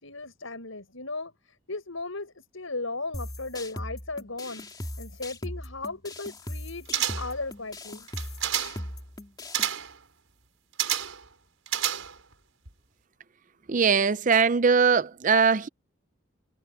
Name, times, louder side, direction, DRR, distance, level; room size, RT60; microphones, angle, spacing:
voice 1, 0.0-8.1, left 3 dB, 85° left, 5.8 m, -37 dB
sound 1, 3.1-9.7, left 1 dB, 20° left, 2.6 m, -39 dB
sound 2, 6.9-7.4 8.1-8.9 9.5-10.0 10.8-11.3 11.7-12.3 12.7-12.8, right 11 dB, 85° right, 5.3 m, -29 dB
voice 2, 13.7-15.7, right 5 dB, 40° right, 0.5 m, -21 dB
head